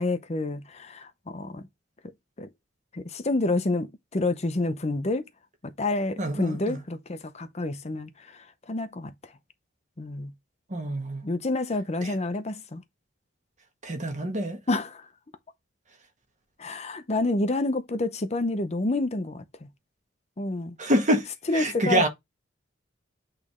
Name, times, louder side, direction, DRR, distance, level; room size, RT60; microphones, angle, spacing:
voice 1, 0.0-1.6 2.4-2.5 2.9-5.2 5.6-9.3 10.0-10.3 11.2-12.8 14.7-15.1 16.6-19.7 20.4-20.8 21.5-22.1, left 2 dB, 35° left, 0.7 m, -29 dB
voice 2, 6.2-6.8 10.7-11.2 12.0-12.1 13.8-14.6 20.8-21.3 21.5-22.1, right 1 dB, 40° right, 1.6 m, -26 dB
8.4 x 3.3 x 3.6 m
head